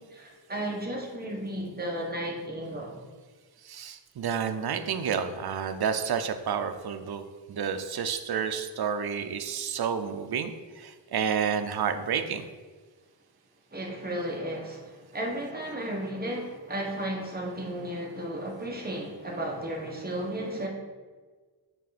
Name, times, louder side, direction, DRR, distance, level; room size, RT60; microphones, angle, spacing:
voice 1, 0.0-2.9 13.7-20.7, right 1 dB, 20° right, -2 dB, 1.4 m, -34 dB
voice 2, 3.6-7.2 7.5-12.4, right 7 dB, 55° right, 8 dB, 0.6 m, -30 dB
9.1 x 3.7 x 4.2 m, 1.4 s
wide cardioid pair, 105°, 44 cm